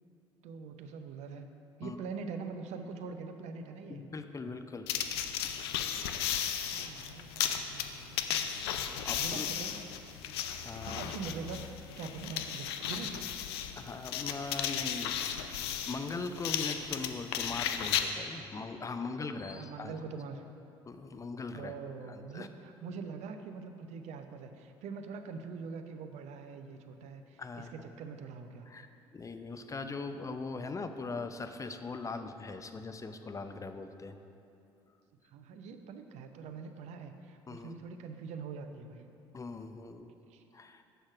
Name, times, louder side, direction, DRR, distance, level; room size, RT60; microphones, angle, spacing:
voice 1, 0.4-1.5 1.8-4.0 6.7-8.6 9.2-9.7 10.8-13.2 19.4-20.4 21.5-28.7 35.2-39.1 40.1-40.4, right 5 dB, 60° right, 7 dB, 0.7 m, -43 dB
voice 2, 3.9-4.9 9.0-9.5 10.6-11.0 13.8-19.9 20.9-21.7 22.1-22.5 27.4-27.7 28.7-28.9 29.1-34.2 37.5-37.7 39.3-40.2 40.5-40.8, left 4 dB, 25° left, 8 dB, 0.6 m, -40 dB
sound 1, 4.9-18.1, left 9 dB, 75° left, 0.5 m, -35 dB
7.9 x 6.3 x 4.9 m, 2.7 s
hypercardioid pair, 55°, 13 cm